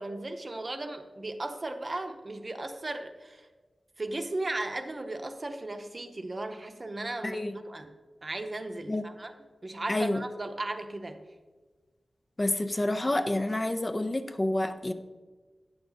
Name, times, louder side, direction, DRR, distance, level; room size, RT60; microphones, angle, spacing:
voice 1, 0.0-3.4 4.0-7.9 8.2-9.3 9.6-11.2, right 2 dB, 40° right, 6 dB, 0.7 m, -36 dB
voice 2, 7.2-7.5 8.9-9.0 9.9-10.2 12.4-14.9, left 1 dB, 30° left, 8 dB, 0.4 m, -28 dB
9.2 x 6.0 x 3.9 m, 1.3 s
wide cardioid pair, 75°, 0 cm